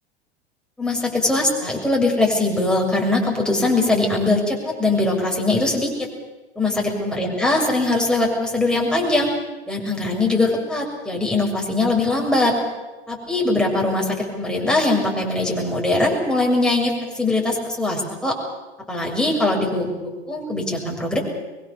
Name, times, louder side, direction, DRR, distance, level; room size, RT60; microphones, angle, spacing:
voice 1, 0.8-6.1 6.6-9.3 9.7-12.6 13.1-18.4 18.9-21.2, left 2 dB, ahead, -1 dB, 7.1 m, -21 dB
23.5 x 23.0 x 7.1 m, 1.1 s
hypercardioid pair, 90°, 32 cm